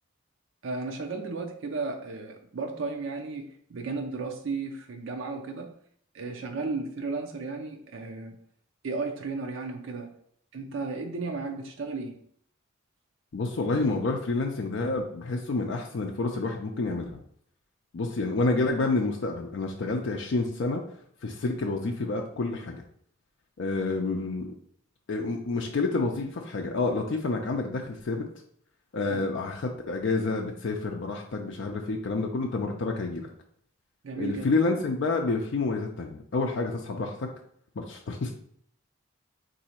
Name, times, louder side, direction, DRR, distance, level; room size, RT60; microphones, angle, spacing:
voice 1, 0.6-5.7 6.1-8.3 8.8-10.1 10.5-12.2 29.1-29.2 34.0-34.4, right 3 dB, 70° right, 4 dB, 0.5 m, -34 dB
voice 2, 13.3-17.2 17.9-20.8 21.2-22.8 23.6-24.5 25.1-28.3 28.9-33.3 34.1-37.3 37.8-38.3, left 3 dB, 60° left, 2 dB, 0.4 m, -29 dB
3.9 x 2.7 x 4.3 m, 0.64 s
head